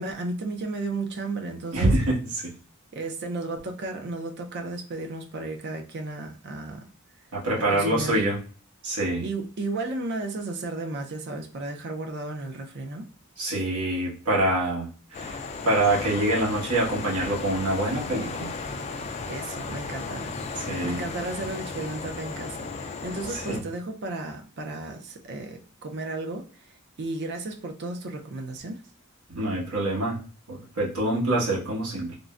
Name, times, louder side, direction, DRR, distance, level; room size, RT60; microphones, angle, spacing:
voice 1, 0.0-2.0 2.9-6.9 7.7-8.2 9.2-13.1 19.2-26.5 27.0-28.8, right 2 dB, 50° right, 0.5 m, -34 dB
voice 2, 1.7-2.5 7.3-8.4 8.8-9.3 13.4-18.5 20.7-21.0 23.5-23.6 29.3-30.2 30.5-32.1, right 1 dB, 80° right, 1.3 m, -25 dB
sound 1, 15.1-23.6, left 4 dB, 30° left, 0.3 m, -35 dB
3.7 x 2.1 x 2.4 m
head